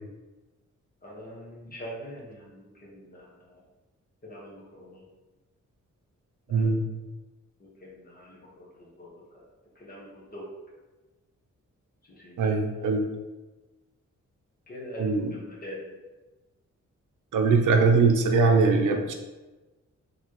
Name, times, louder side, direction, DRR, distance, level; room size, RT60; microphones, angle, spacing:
voice 1, 1.0-3.6 4.2-5.0 6.5-6.7 7.6-9.4 9.7-10.4 12.1-12.5 14.7-15.9, equal, 30° left, -5 dB, 1.2 m, -43 dB
voice 2, 6.5-6.9 12.4-13.0 15.0-15.3 17.3-19.1, right 4 dB, 85° right, 4 dB, 0.6 m, -21 dB
4.7 x 3.3 x 3.0 m, 1.2 s
wide cardioid pair, 170°, 30 cm